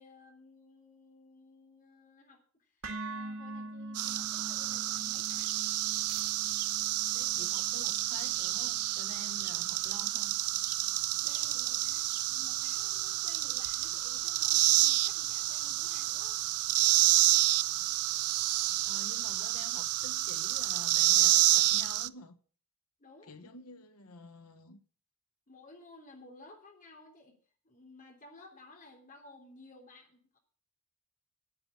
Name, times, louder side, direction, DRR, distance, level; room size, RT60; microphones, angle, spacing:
voice 1, 0.0-5.5 11.1-16.4 23.0-23.5 25.5-27.4 27.6-30.4, left 2 dB, 35° left, 3.3 m, -56 dB
sound 1, 2.8-10.9, right 2 dB, 70° right, 2.0 m, -46 dB
sound 2, 4.0-22.1, right 16 dB, 90° right, 0.4 m, -29 dB
voice 2, 7.1-10.4 18.8-22.4 23.2-24.8, left 2 dB, 90° left, 1.2 m, -49 dB
9.8 x 8.6 x 7.4 m
head